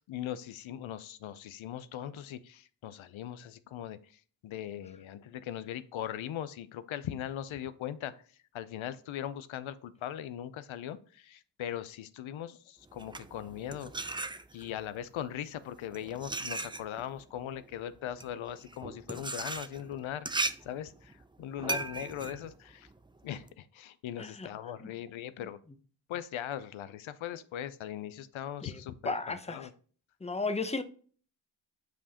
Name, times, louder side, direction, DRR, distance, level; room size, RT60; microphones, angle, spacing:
voice 1, 0.0-8.1 8.5-14.2 14.5-22.9 23.2-25.6 26.1-29.7, left 10 dB, 90° left, 0.6 m, -40 dB
sound 1, 12.9-14.8 15.6-23.5, right 3 dB, 10° right, 0.4 m, -38 dB
voice 2, 24.2-24.5 24.8-24.9 28.6-29.7 30.2-30.8, left 3 dB, 15° left, 0.8 m, -35 dB
8.0 x 4.9 x 2.8 m
cardioid pair, 65°, 46 cm